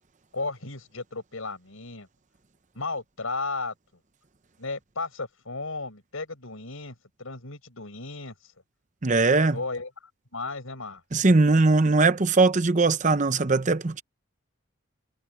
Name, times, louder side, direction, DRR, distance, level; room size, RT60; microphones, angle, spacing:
voice 1, 0.3-2.1 2.7-3.7 4.6-8.3 9.5-9.9 10.3-11.0, left 3 dB, 80° left, 4.9 m, -34 dB
voice 2, 9.0-9.6 11.1-14.0, right 3 dB, 35° right, 0.7 m, -20 dB
head